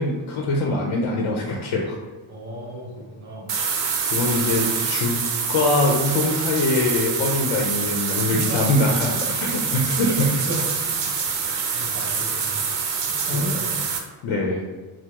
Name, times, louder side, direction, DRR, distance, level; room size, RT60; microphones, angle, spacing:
voice 1, 0.0-2.0 4.1-5.2 5.5-10.4 13.3-13.4 14.2-14.6, left 2 dB, 75° left, 0 dB, 0.7 m, -23 dB
voice 2, 2.3-3.5 7.9-8.7 9.3-9.5 10.1-10.2 10.4-13.8, equal, 25° right, -3 dB, 1.3 m, -34 dB
sound 1, 3.5-14.0, right 6 dB, 60° right, 0.7 m, -25 dB
4.6 x 2.0 x 3.5 m, 1.3 s
cardioid pair, 125°, 47 cm